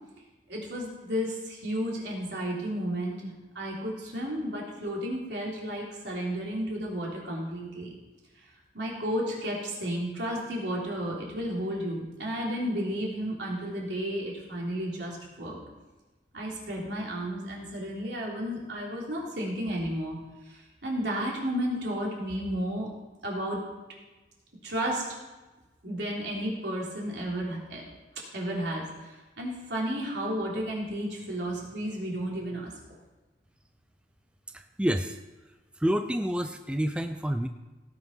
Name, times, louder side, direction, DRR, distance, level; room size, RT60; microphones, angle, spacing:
voice 1, 0.5-7.9 8.7-15.6 16.3-20.2 20.4-22.9 23.2-23.6 24.6-25.0 25.8-27.8 28.3-32.7, equal, 75° right, -3 dB, 3.5 m, -32 dB
voice 2, 34.5-35.2 35.8-37.5, equal, 5° right, 8 dB, 0.4 m, -28 dB
17.5 x 5.9 x 5.6 m, 1.2 s
head